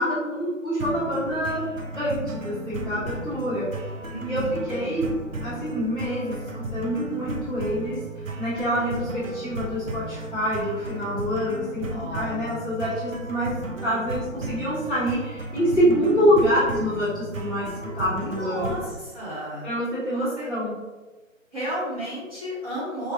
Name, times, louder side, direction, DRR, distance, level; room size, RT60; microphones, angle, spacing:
voice 1, 0.0-1.7 1.9-3.7 4.2-5.1 5.4-18.7 19.6-20.7, equal, ahead, -22 dB, 1.5 m, -26 dB
sound 1, 0.8-19.0, right 1 dB, 70° right, 0.8 m, -34 dB
voice 2, 4.1-4.5 11.9-12.7 18.2-19.7 20.1-20.5 21.5-23.1, equal, 25° right, -12 dB, 1.3 m, -33 dB
4.9 x 2.5 x 2.8 m, 1.2 s
figure-of-eight pair, 160°, 41 cm